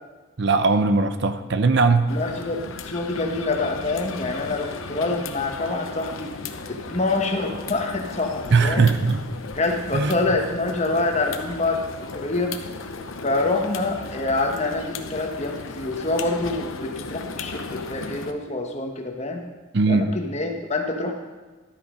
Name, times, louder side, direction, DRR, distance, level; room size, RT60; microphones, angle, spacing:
voice 1, 0.4-2.1 8.5-9.2 9.9-10.2 19.7-20.1, right 4 dB, 60° right, 9 dB, 0.7 m, -19 dB
sound 1, 2.1-18.3, left 4 dB, 85° left, 0.8 m, -36 dB
voice 2, 2.1-6.3 6.7-8.9 9.5-12.6 13.2-19.4 19.9-21.1, left 2 dB, 35° left, 3 dB, 1.3 m, -26 dB
12.0 x 8.4 x 5.1 m, 1.3 s
head